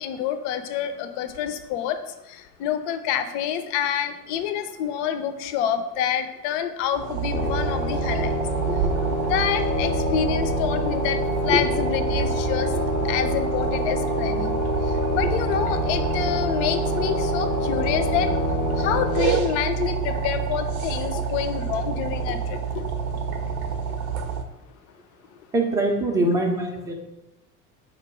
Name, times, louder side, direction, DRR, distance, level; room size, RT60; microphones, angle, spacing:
voice 1, 0.0-2.0 2.3-8.3 9.3-11.2 11.4-12.7 13.0-14.6 15.1-18.3 18.8-22.8, left 9 dB, 45° left, 9 dB, 0.5 m, -27 dB
sound 1, 6.9-24.4, right 6 dB, 60° right, 0.7 m, -28 dB
sound 2, 7.3-19.2, left 2 dB, 85° left, 0.7 m, -27 dB
voice 2, 25.5-26.9, right 1 dB, 5° right, 1 dB, 0.5 m, -23 dB
4.9 x 2.2 x 4.6 m, 0.90 s
figure-of-eight pair, 75°, 50 cm